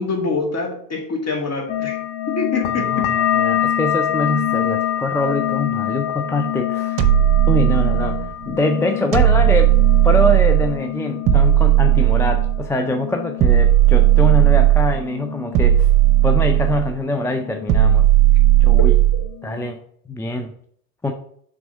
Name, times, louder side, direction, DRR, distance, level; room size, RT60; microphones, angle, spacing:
voice 1, 0.0-2.0 2.3-3.1, left 3 dB, 30° left, 2 dB, 2.1 m, -25 dB
sound 1, 1.7-16.9 17.1-17.9 18.2-18.9 19.3-19.7, left 11 dB, 55° left, 1.1 m, -26 dB
voice 2, 2.9-7.0 7.5-9.8 10.0-15.9 16.2-18.1 18.6-18.9 19.4-19.8 20.1-20.5 21.0-21.1, left 2 dB, 5° left, 5 dB, 0.4 m, -24 dB
sound 2, 7.0-8.3 9.1-10.8 11.3-12.7 13.4-15.0 15.5-16.9 17.7-19.3, right 13 dB, 50° right, 0.9 m, -15 dB
6.1 x 3.6 x 5.8 m, 0.66 s
hypercardioid pair, 75°, 48 cm